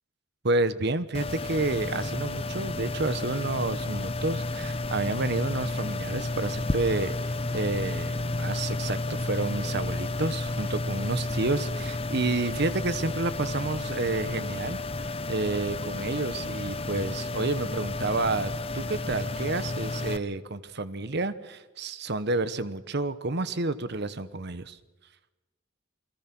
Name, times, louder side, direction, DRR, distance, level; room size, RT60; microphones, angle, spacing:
voice 1, 0.4-24.8, right 2 dB, 55° right, 13 dB, 1.1 m, -30 dB
sound 1, 1.1-20.2, left 2 dB, 30° left, 0.8 m, -32 dB
28.5 x 21.5 x 6.1 m, 1.1 s
head